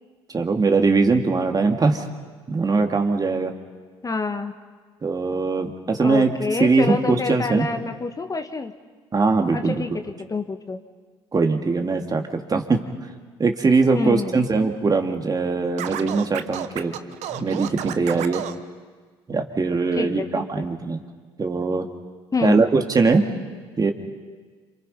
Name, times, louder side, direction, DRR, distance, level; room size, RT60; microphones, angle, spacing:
voice 1, 0.3-2.0 2.5-3.5 5.0-6.3 6.6-7.6 9.1-9.8 11.3-12.9 13.4-17.0 17.3-18.4 19.3-21.0 21.4-21.9 22.4-23.2 23.8-23.9, right 4 dB, 30° right, 4 dB, 2.6 m, -21 dB
voice 2, 4.0-4.5 6.0-8.7 9.5-9.9 10.3-10.8 13.9-14.4 19.9-20.3 20.6-20.7 22.3-22.6, left 4 dB, 25° left, 7 dB, 1.7 m, -27 dB
Scratching (performance technique), 15.8-18.6, right 11 dB, 60° right, 1.3 m, -31 dB
28.0 x 27.5 x 5.6 m, 1.5 s
hypercardioid pair, 60°, 13 cm